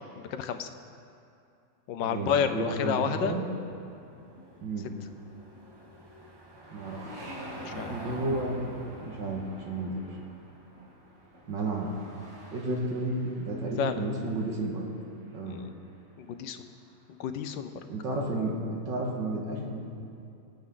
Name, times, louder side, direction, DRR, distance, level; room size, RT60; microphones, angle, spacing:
voice 1, 0.3-0.7 1.9-3.3 7.7-8.0 13.8-14.1 15.5-15.7 16.2-16.7 17.1-17.7, left 8 dB, 90° left, 9 dB, 1.5 m, -30 dB
voice 2, 2.0-3.4 4.6-4.9 6.7-7.1 7.7-10.0 11.5-11.9 12.5-14.9 15.3-15.6 17.9-19.8, right 2 dB, 80° right, -1 dB, 2.5 m, -32 dB
Car passing by / Engine, 2.8-13.4, right 1 dB, 15° right, 0.9 m, -47 dB
sound 1, 3.7-17.9, equal, 65° right, 2.6 m, -51 dB
24.5 x 8.8 x 3.9 m, 2.6 s
omnidirectional pair, 1.9 m